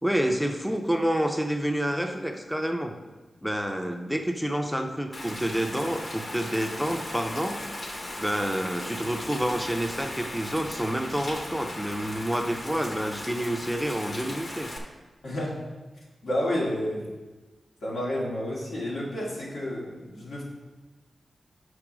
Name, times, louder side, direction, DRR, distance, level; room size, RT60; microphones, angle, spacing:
voice 1, 0.0-3.0 3.4-7.6 8.2-14.7, equal, ahead, 4 dB, 0.5 m, -28 dB
Rain, 5.1-14.8, left 1 dB, 40° left, 1.0 m, -37 dB
voice 2, 15.2-15.6 16.2-17.1 17.8-20.4, left 1 dB, 80° left, -4 dB, 2.1 m, -30 dB
5.9 x 4.8 x 6.0 m, 1.2 s
wide cardioid pair, 145°, 0 cm